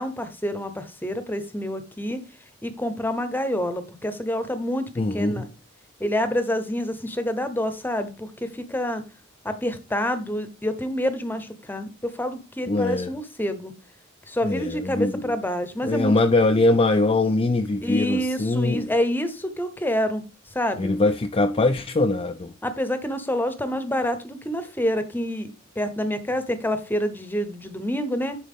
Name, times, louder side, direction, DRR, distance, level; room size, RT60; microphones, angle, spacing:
voice 1, 0.0-2.2 2.6-4.9 5.1-5.5 6.0-9.0 9.4-13.7 14.3-16.1 17.8-20.2 20.5-20.9 22.6-25.5 25.8-28.4, equal, 10° left, 0.8 m, -27 dB
voice 2, 5.0-5.5 12.7-13.1 14.4-15.4 15.8-18.9 20.8-22.5, left 2 dB, 25° left, 0.4 m, -22 dB
10.5 x 4.1 x 3.6 m
head